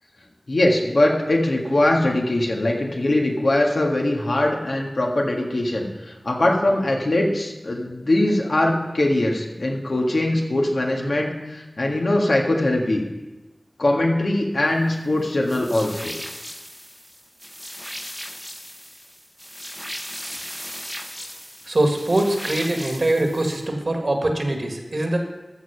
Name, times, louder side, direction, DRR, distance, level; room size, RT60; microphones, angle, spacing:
voice 1, 0.5-13.0 13.8-16.1, left 1 dB, 75° left, 0 dB, 1.7 m, -21 dB
sound 1, 15.5-23.7, equal, 5° left, 0.8 m, -37 dB
voice 2, 21.6-25.2, right 1 dB, 65° right, 3 dB, 1.7 m, -22 dB
13.5 x 6.7 x 5.7 m, 1.1 s
wide cardioid pair, 65°, 0 cm